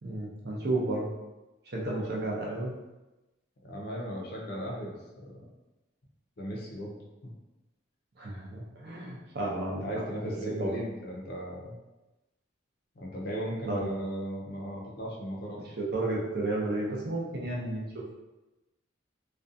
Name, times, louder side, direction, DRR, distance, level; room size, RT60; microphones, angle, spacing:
voice 1, 0.0-1.2 1.7-2.7 8.2-9.9 10.2-10.3 10.6-10.7 13.7-13.9 15.6-18.1, right 2 dB, 50° right, -3 dB, 0.5 m, -32 dB
voice 2, 3.6-5.4 6.4-7.0 9.8-11.8 13.0-15.6, equal, 50° left, -2 dB, 0.5 m, -36 dB
2.4 x 2.2 x 2.6 m, 1.0 s
head